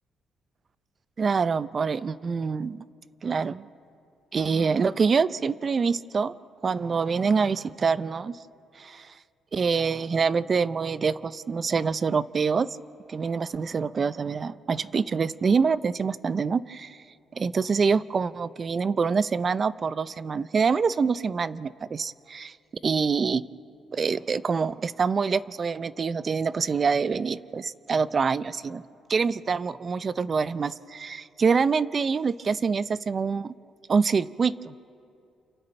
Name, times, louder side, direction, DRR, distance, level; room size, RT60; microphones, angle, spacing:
voice 1, 1.2-2.8 3.2-3.7 4.3-6.3 6.6-8.4 8.8-9.1 9.5-12.7 13.1-17.0 17.3-22.6 22.8-23.4 23.9-28.8 29.1-33.5 33.9-34.7, right 5 dB, 40° right, 17 dB, 0.5 m, -25 dB
29.5 x 28.5 x 3.3 m, 2.6 s
cardioid pair, 90°, 0 cm